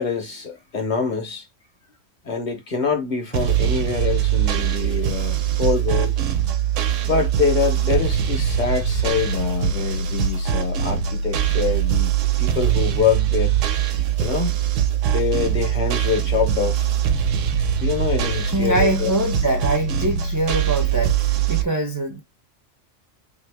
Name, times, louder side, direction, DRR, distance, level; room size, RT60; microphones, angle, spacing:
voice 1, 0.0-1.5 2.2-6.2 7.1-12.1 12.4-13.5 14.2-14.6 15.1-16.9 17.8-19.1, left 6 dB, 45° left, 0.8 m, -25 dB
sound 1, 3.3-21.6, right 9 dB, 80° right, 0.9 m, -22 dB
voice 2, 18.5-22.2, right 2 dB, 30° right, 0.3 m, -23 dB
2.8 x 2.6 x 3.3 m
omnidirectional pair, 1.3 m